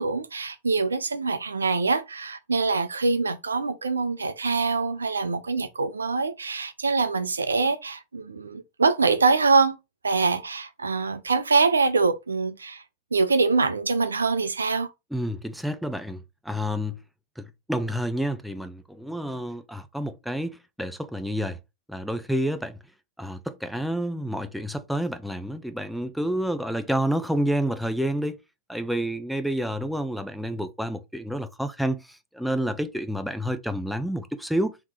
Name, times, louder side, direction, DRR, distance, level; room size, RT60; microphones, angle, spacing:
voice 1, 0.0-9.8 10.0-12.8 13.1-14.9, right 4 dB, 85° right, 0.5 m, -24 dB
voice 2, 15.1-17.0 17.4-21.6 21.9-22.8 23.2-28.4 28.7-34.8, equal, ahead, 0.6 m, -29 dB
3.6 x 2.9 x 4.6 m
figure-of-eight pair, 90°, 0 cm